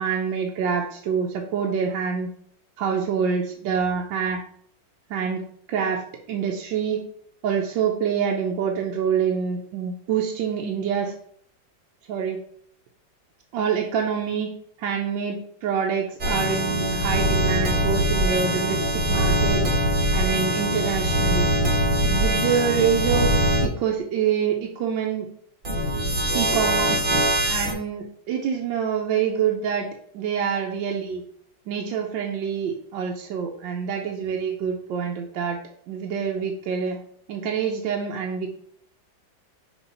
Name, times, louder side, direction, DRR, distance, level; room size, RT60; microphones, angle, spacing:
voice 1, 0.0-2.3 2.8-4.4 5.1-7.0 7.4-11.1 12.1-12.4 13.5-14.5 14.8-19.6 20.1-21.5 22.0-25.3 26.3-27.1 27.5-29.9 30.1-31.2 31.7-35.6 35.9-37.0 37.3-38.5, right 7 dB, 75° right, 1 dB, 1.4 m, -26 dB
sound 1, 16.2-23.7 25.6-27.7, equal, 40° right, 1.0 m, -22 dB
6.2 x 2.9 x 5.4 m, 0.64 s
omnidirectional pair, 2.0 m